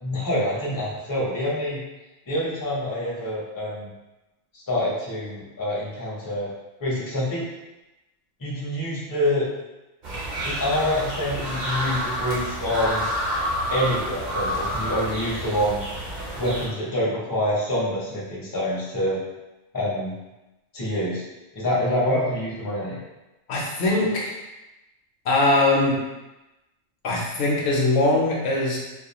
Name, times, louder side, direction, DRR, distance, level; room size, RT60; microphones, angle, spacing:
voice 1, 0.0-1.8 2.3-3.9 4.7-6.5 6.8-7.5 8.4-9.5 10.4-13.1 13.7-15.8 16.4-19.2 19.7-20.1 20.7-21.2 21.5-23.0, left 1 dB, 25° left, -7 dB, 0.5 m, -26 dB
sound 1, 10.0-16.7, equal, 45° right, 0.7 m, -29 dB
voice 2, 23.5-24.4 25.2-26.0 27.0-28.8, left 2 dB, 65° left, -3 dB, 0.8 m, -21 dB
2.4 x 2.2 x 2.9 m, 1.0 s
omnidirectional pair, 1.3 m